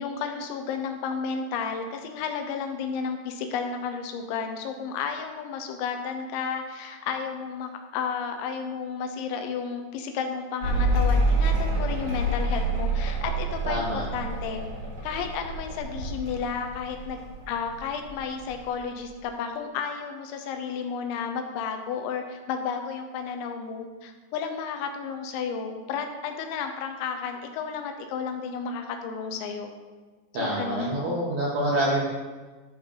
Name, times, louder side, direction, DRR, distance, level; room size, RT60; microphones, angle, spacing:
voice 1, 0.0-14.6 15.0-17.2 17.5-29.7 30.3-31.0, left 6 dB, 90° left, 5 dB, 3.2 m, -32 dB
Mechanical fan, 10.6-17.5 17.7-18.5, right 1 dB, 40° right, 2.1 m, -27 dB
voice 2, 13.6-14.0 30.3-32.0, right 1 dB, 70° right, -6 dB, 1.7 m, -26 dB
13.5 x 5.1 x 3.8 m, 1.3 s
omnidirectional pair, 5.2 m